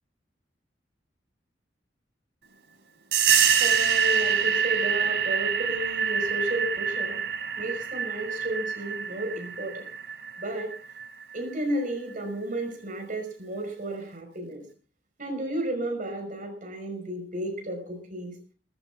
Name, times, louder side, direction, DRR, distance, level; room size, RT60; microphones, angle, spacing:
sound 1, 3.1-11.4, right 7 dB, 70° right, 3.8 m, -26 dB
voice 1, 3.6-7.2 7.6-9.8 10.4-10.7 11.3-14.6 15.2-18.4, right 1 dB, 50° right, 5 dB, 5.7 m, -33 dB
19.0 x 16.0 x 3.7 m, 0.39 s
head